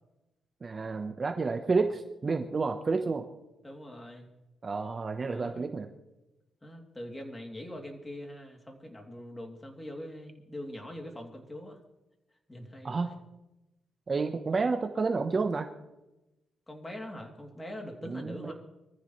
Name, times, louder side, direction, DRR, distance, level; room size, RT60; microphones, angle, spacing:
voice 1, 0.6-3.3 4.6-5.9 12.8-13.1 14.1-15.7 18.0-18.5, right 4 dB, 35° right, 6 dB, 1.0 m, -30 dB
voice 2, 3.6-4.3 5.2-5.7 6.6-11.8 12.5-13.2 16.7-18.5, left 1 dB, 15° left, 2 dB, 3.0 m, -43 dB
24.0 x 14.5 x 3.2 m, 0.98 s
cardioid pair, 105°, 0 cm